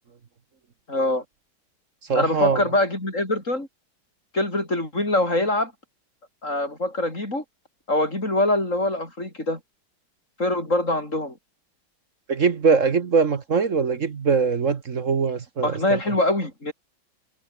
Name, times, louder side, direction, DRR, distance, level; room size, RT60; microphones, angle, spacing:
voice 1, 0.9-1.2 2.1-3.7 4.3-5.7 6.4-7.4 7.9-9.6 10.4-11.4 15.6-16.7, left 1 dB, 35° left, 8.1 m, -24 dB
voice 2, 2.1-2.6 12.3-16.0, right 5 dB, 45° right, 1.4 m, -22 dB
omnidirectional pair, 2.3 m